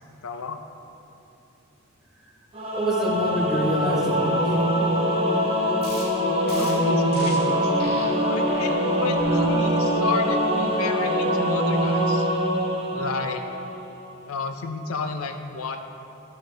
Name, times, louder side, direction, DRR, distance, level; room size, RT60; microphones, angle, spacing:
voice 1, 0.2-0.6 6.5-12.3 12.9-13.5 14.3-15.8, left 4 dB, 85° left, 6 dB, 0.6 m, -31 dB
Singing / Musical instrument, 2.5-13.8, equal, 25° right, 1.1 m, -23 dB
voice 2, 2.7-4.9, right 1 dB, ahead, -5 dB, 1.3 m, -27 dB
sound 1, 5.8-6.0 6.5-6.7 7.1-7.4 7.8-8.0 8.4-8.7 9.2-9.5 10.0-10.3, left 1 dB, 45° left, 2.1 m, -39 dB
12.5 x 6.4 x 3.4 m, 2.8 s
head